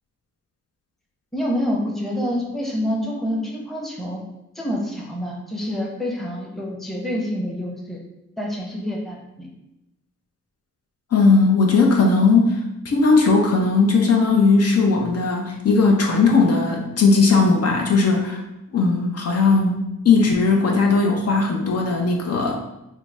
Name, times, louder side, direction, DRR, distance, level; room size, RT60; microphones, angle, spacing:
voice 1, 1.3-4.2 4.5-8.0 8.4-9.5, equal, ahead, -2 dB, 0.8 m, -27 dB
voice 2, 11.1-12.6 12.8-18.4 18.7-22.6, left 4 dB, 50° left, 0 dB, 0.6 m, -17 dB
3.7 x 2.1 x 3.4 m, 0.92 s
cardioid pair, 75°, 32 cm